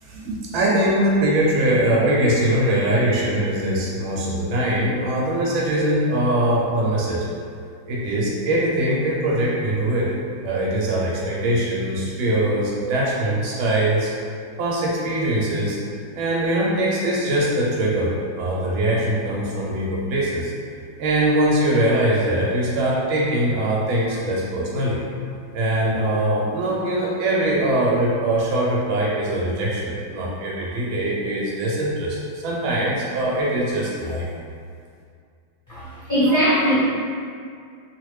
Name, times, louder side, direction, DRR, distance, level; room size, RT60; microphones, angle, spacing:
voice 1, 0.0-7.3 7.9-10.1 10.4-14.1 14.6-15.8 16.2-20.5 21.0-25.0 25.5-34.3, right 1 dB, 85° right, -5 dB, 1.4 m, -22 dB
voice 2, 35.7-36.7, equal, 10° left, -14 dB, 1.1 m, -20 dB
3.0 x 2.4 x 3.1 m, 2.3 s
omnidirectional pair, 2.1 m